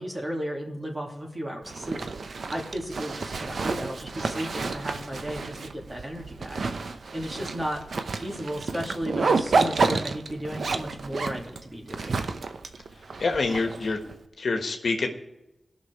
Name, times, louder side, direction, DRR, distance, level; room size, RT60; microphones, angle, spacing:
voice 1, 0.0-2.0 2.5-7.8 8.2-12.2, equal, 25° right, 0 dB, 2.6 m, -34 dB
Zipper (clothing), 1.6-14.1, right 4 dB, 80° right, 0.7 m, -30 dB
voice 2, 13.2-14.0 14.4-15.1, left 3 dB, 75° left, 4 dB, 1.3 m, -26 dB
17.5 x 6.2 x 4.7 m, 0.96 s
wide cardioid pair, 65°, 0 cm